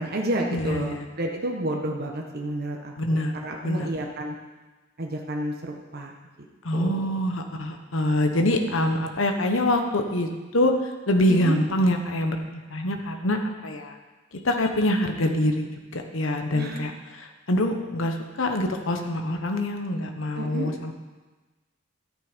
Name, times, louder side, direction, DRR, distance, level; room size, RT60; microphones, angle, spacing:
voice 1, 0.0-4.3 5.0-6.1 6.7-7.1 11.3-11.6 16.5-16.8 20.4-20.7, right 1 dB, 50° right, 0 dB, 1.2 m, -30 dB
voice 2, 0.5-1.0 3.0-3.3 3.6-3.9 6.6-10.7 11.1-14.0 14.4-16.9 17.2-20.9, left 1 dB, 75° left, 4 dB, 1.2 m, -25 dB
13.0 x 9.2 x 5.2 m, 1.2 s
head